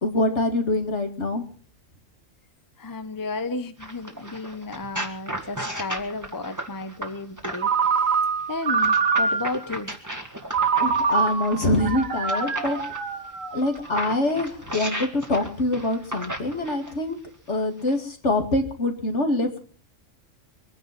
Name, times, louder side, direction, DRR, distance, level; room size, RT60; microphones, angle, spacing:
voice 1, 0.0-1.4 10.8-12.8 13.5-17.2 17.5-19.6, left 2 dB, 60° left, 5 dB, 2.7 m, -25 dB
voice 2, 2.8-7.7 8.5-9.9, left 3 dB, 20° left, 10 dB, 0.9 m, -33 dB
sound 1, 3.8-7.9 8.8-13.0 13.6-17.0 17.8-17.9, right 1 dB, 15° right, 2.0 m, -35 dB
Ringtone, 7.6-9.7 10.5-13.9, right 5 dB, 85° right, 1.9 m, -24 dB
24.0 x 10.0 x 6.0 m, 0.42 s
omnidirectional pair, 1.3 m